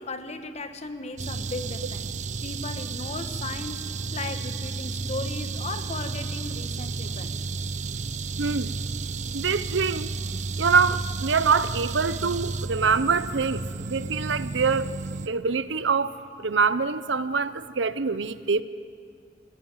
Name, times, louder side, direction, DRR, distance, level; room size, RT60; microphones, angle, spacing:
voice 1, 0.0-7.4, left 3 dB, 35° left, 1.3 m, -36 dB
sound 1, 1.2-15.3, right 4 dB, 40° right, 0.6 m, -32 dB
voice 2, 8.4-8.7 9.3-10.1 10.6-14.9 15.3-18.6, right 5 dB, 85° right, 0.8 m, -25 dB
21.0 x 16.0 x 9.1 m
head